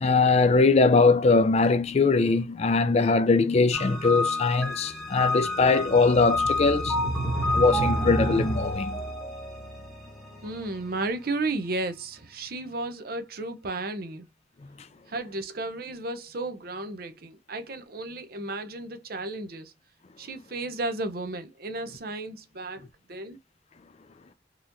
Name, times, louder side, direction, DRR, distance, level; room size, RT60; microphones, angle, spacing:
voice 1, 0.0-7.0 7.5-9.0, left 4 dB, 35° left, 0.4 m, -21 dB
sound 1, 3.7-11.0, left 1 dB, ahead, 1.2 m, -29 dB
voice 2, 10.4-14.3 15.1-19.7 20.2-23.4, right 2 dB, 55° right, 0.7 m, -33 dB
4.0 x 2.9 x 2.5 m
head